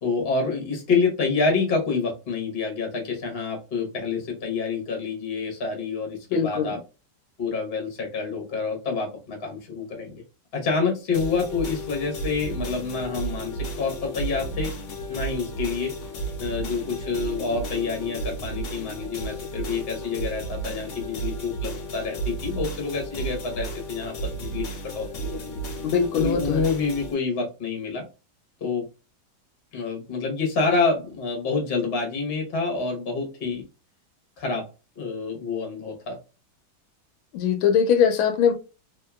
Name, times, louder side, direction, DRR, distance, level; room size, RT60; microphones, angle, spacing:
voice 1, 0.0-6.8 7.4-10.2 10.5-14.7 15.1-15.9 16.4-24.7 24.9-25.5 26.1-28.1 28.6-28.9 29.7-33.6 34.4-34.7 35.0-36.2, left 4 dB, 35° left, 1.1 m, -27 dB
voice 2, 6.3-6.8 25.8-26.6 37.3-38.5, left 7 dB, 85° left, 1.4 m, -21 dB
sound 1, 11.1-27.1, right 3 dB, 60° left, 0.8 m, -33 dB
3.4 x 2.8 x 2.3 m
omnidirectional pair, 2.2 m